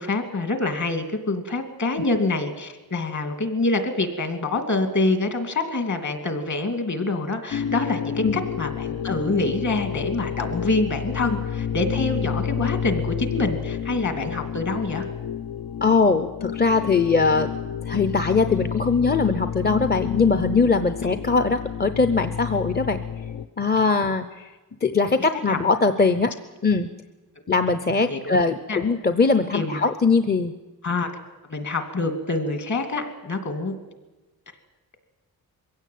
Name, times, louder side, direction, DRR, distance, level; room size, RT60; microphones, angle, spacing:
voice 1, 0.0-15.0 25.5-25.6 28.1-28.4 28.7-28.8 29.5-29.8 30.8-31.1 31.5-33.8, left 3 dB, 50° left, 7 dB, 2.5 m, -26 dB
sound 1, 7.5-23.5, left 8 dB, 75° left, 0.7 m, -30 dB
voice 2, 15.8-17.5 17.9-23.0 23.6-24.5 24.8-26.3 26.6-26.9 27.5-30.5, left 4 dB, 25° left, 10 dB, 0.7 m, -21 dB
22.5 x 16.0 x 9.3 m, 1.2 s
wide cardioid pair, 180°, 37 cm